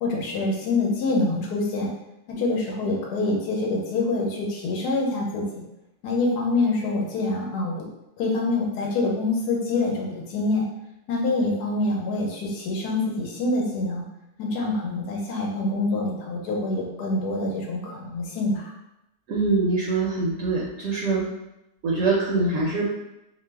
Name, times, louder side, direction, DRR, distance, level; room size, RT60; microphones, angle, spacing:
voice 1, 0.0-1.9 2.3-5.6 6.0-7.8 8.2-10.7 11.1-14.1 14.4-18.7, left 2 dB, 85° left, -1 dB, 1.2 m, -26 dB
voice 2, 19.3-21.2 21.8-22.9, right 3 dB, 70° right, -4 dB, 0.8 m, -23 dB
2.9 x 2.0 x 3.3 m, 0.90 s
omnidirectional pair, 1.7 m